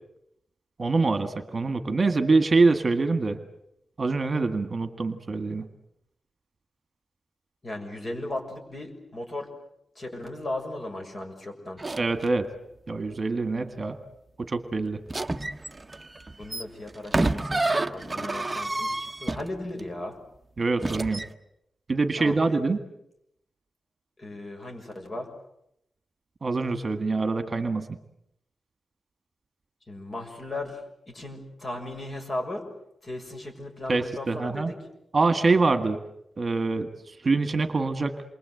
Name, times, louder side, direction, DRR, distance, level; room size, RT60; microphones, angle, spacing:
voice 1, 0.8-3.4 4.0-5.7 12.0-12.5 12.9-14.0 14.4-15.0 20.6-21.2 21.9-22.8 26.4-27.9 33.9-34.7 35.1-36.0 36.4-38.2, right 3 dB, 40° right, 9 dB, 1.7 m, -25 dB
voice 2, 7.6-9.5 10.0-11.8 16.4-20.1 22.2-22.7 24.2-25.3 29.9-30.8 31.1-32.6 33.0-34.7, left 1 dB, 35° left, 3 dB, 6.6 m, -36 dB
sound 1, 11.8-12.3 15.1-19.8 20.8-21.3, right 2 dB, 20° right, 1.0 m, -29 dB
28.5 x 23.5 x 7.9 m, 0.79 s
wide cardioid pair, 110°, 0 cm